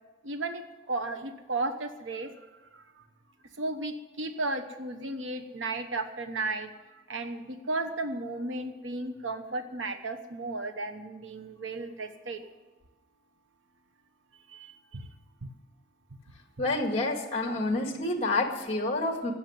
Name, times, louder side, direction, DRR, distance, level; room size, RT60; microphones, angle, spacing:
voice 1, 0.2-2.3 2.7-3.0 3.6-12.4 14.5-15.1 15.4-15.5, right 2 dB, 85° right, 7 dB, 1.1 m, -34 dB
voice 2, 16.6-19.3, left 2 dB, 30° left, 4 dB, 2.0 m, -28 dB
15.5 x 6.6 x 9.6 m, 1.2 s
head